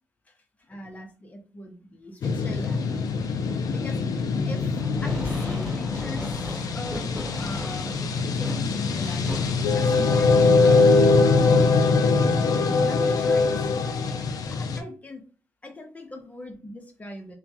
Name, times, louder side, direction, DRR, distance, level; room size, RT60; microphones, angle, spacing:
voice 1, 0.7-3.2 3.7-4.0 4.4-9.3 9.7-11.1 12.8-13.9 14.5-15.2 15.6-17.3, left 2 dB, 25° left, 0.8 m, -40 dB
sound 1, 2.2-14.8, left 4 dB, 80° left, 0.4 m, -22 dB
Fireworks, 4.8-10.8, equal, 5° right, 1.4 m, -38 dB
3.0 x 2.3 x 2.8 m
cardioid pair, 105°, 6 cm